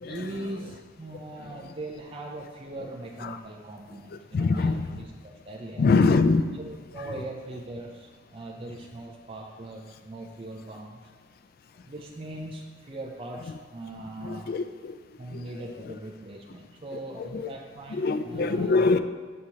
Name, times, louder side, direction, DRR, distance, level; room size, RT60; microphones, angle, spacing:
voice 1, 0.0-5.9 6.5-11.0 11.8-14.6 15.2-18.9, right 2 dB, 30° right, 0.4 m, -40 dB
voice 2, 4.3-4.9 5.8-6.6 14.2-14.9 15.3-15.4 17.2-17.5 17.9-19.0, left 4 dB, 50° left, 0.3 m, -23 dB
6.5 x 5.9 x 2.8 m
head